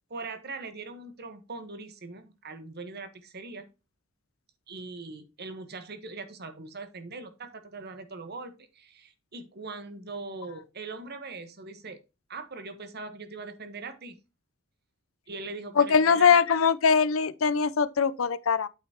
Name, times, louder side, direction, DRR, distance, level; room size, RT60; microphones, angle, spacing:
voice 1, 0.1-3.7 4.7-12.0 12.3-14.2 15.3-16.4, right 3 dB, 55° right, 1.2 m, -41 dB
voice 2, 15.8-18.7, left 6 dB, 85° left, 0.6 m, -22 dB
8.7 x 5.9 x 2.9 m
head